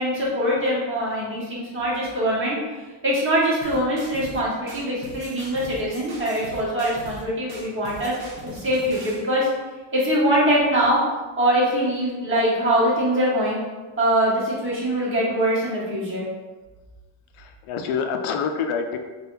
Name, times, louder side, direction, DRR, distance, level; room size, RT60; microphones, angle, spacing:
voice 1, 0.0-8.1 8.4-9.5 9.9-11.0 11.4-13.6 14.0-16.3, equal, 25° right, -7 dB, 1.3 m, -23 dB
sound 1, 3.6-4.4 4.7-7.2 7.5-9.2, right 1 dB, 50° right, 1.1 m, -40 dB
voice 2, 17.3-19.0, left 6 dB, 85° left, 5 dB, 0.6 m, -26 dB
3.4 x 2.5 x 4.5 m, 1.3 s
cardioid pair, 160°, 50 cm